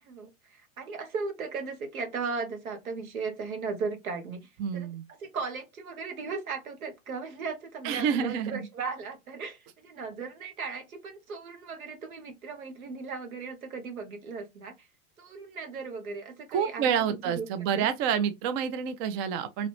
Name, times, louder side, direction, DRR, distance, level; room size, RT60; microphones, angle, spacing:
voice 1, 0.0-14.9 15.2-17.5 17.7-17.9, right 4 dB, 80° right, 1.0 m, -37 dB
voice 2, 4.6-5.0 7.8-8.7 16.5-19.7, right 8 dB, 35° right, 0.5 m, -28 dB
2.9 x 2.4 x 3.2 m
hypercardioid pair, 95°, 42 cm